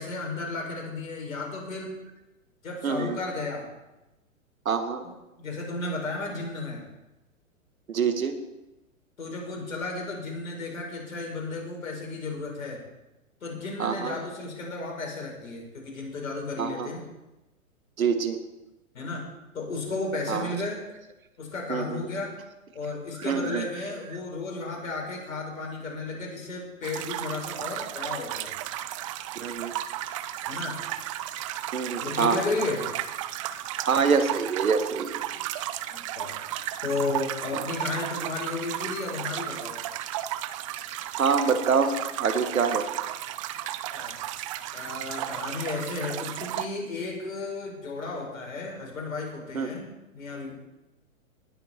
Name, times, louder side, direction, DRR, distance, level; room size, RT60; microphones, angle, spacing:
voice 1, 0.0-1.9 2.6-3.6 5.0-6.8 9.2-12.8 13.4-17.0 18.9-19.2 19.5-20.8 21.4-22.3 22.7-28.5 30.5-30.8 32.0-32.8 35.9-36.3 36.8-39.8 43.9-44.2 44.7-49.9 50.1-50.5, left 3 dB, 75° left, 0 dB, 5.1 m, -33 dB
voice 2, 2.8-3.2 4.6-5.0 7.9-8.3 13.8-14.1 16.6-16.9 18.0-18.4 20.3-20.5 21.7-22.1 23.2-23.7 29.3-29.7 31.7-32.4 33.8-35.2 37.5-37.7 41.2-42.8 49.5-49.7, right 5 dB, 80° right, 8 dB, 1.7 m, -25 dB
sound 1, 26.8-46.7, right 13 dB, 25° right, 0.4 m, -34 dB
19.0 x 7.9 x 4.5 m, 1.0 s
figure-of-eight pair, 115°, 41 cm